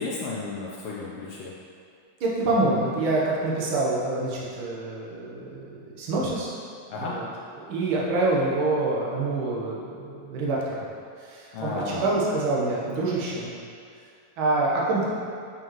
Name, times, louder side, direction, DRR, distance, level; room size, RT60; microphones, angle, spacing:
voice 1, 0.0-1.5 6.9-7.1 11.5-12.1, left 3 dB, 80° left, -4 dB, 1.2 m, -33 dB
voice 2, 2.2-6.5 7.0-7.3 7.6-10.8 11.2-13.5 14.4-15.1, right 2 dB, 55° right, -5 dB, 1.6 m, -26 dB
7.9 x 5.5 x 3.1 m, 2.4 s
omnidirectional pair, 3.3 m